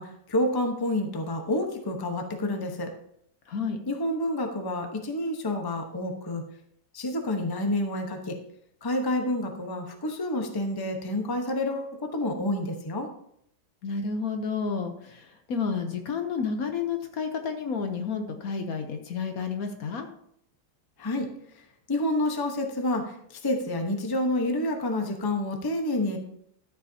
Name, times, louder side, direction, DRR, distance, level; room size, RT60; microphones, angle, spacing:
voice 1, 0.0-2.9 3.9-6.4 6.9-8.4 8.8-13.1 21.0-21.3 21.9-26.2, left 1 dB, 15° left, 3 dB, 0.8 m, -28 dB
voice 2, 3.5-3.8 13.8-20.1, left 5 dB, 60° left, 5 dB, 1.2 m, -31 dB
13.0 x 8.1 x 2.8 m, 0.71 s
omnidirectional pair, 1.9 m